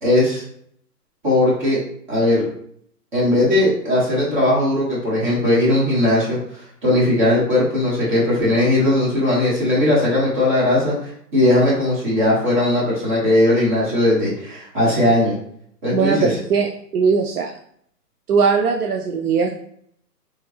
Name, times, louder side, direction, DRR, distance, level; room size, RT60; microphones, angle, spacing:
voice 1, 0.0-0.4 1.2-1.8 2.1-2.4 3.1-6.4 6.8-15.4 15.8-16.3, left 1 dB, 30° right, -7 dB, 1.5 m, -18 dB
voice 2, 15.9-17.5 18.3-19.6, right 5 dB, 70° right, 2 dB, 0.5 m, -19 dB
3.5 x 2.6 x 3.2 m, 0.67 s
hypercardioid pair, 170°, 48 cm